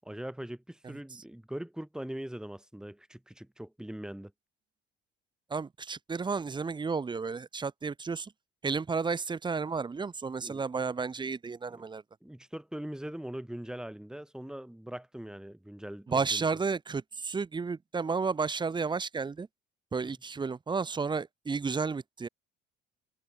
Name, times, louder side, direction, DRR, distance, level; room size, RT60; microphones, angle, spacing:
voice 1, 0.0-4.3 10.4-10.6 11.7-11.8 12.2-16.5, right 1 dB, 5° right, 5.6 m, -41 dB
voice 2, 5.5-8.3 8.6-12.0 16.1-19.5 19.9-22.3, right 4 dB, 25° right, 1.8 m, -32 dB
cardioid pair, 115°, 20 cm